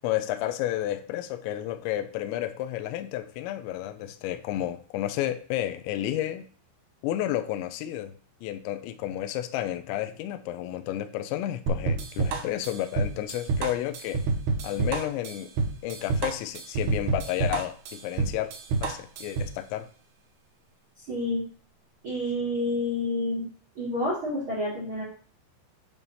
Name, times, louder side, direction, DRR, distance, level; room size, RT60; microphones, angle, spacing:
voice 1, 0.0-6.5 7.0-8.1 8.4-14.2 14.6-15.5 15.8-18.5 18.8-19.9, left 13 dB, 80° left, 7 dB, 2.8 m, -31 dB
sound 1, 11.7-19.6, right 4 dB, 70° right, 2.8 m, -28 dB
voice 2, 21.0-21.4 22.0-23.4 23.7-25.0, left 1 dB, 55° right, -7 dB, 1.5 m, -29 dB
9.0 x 3.3 x 5.4 m, 0.43 s
omnidirectional pair, 5.5 m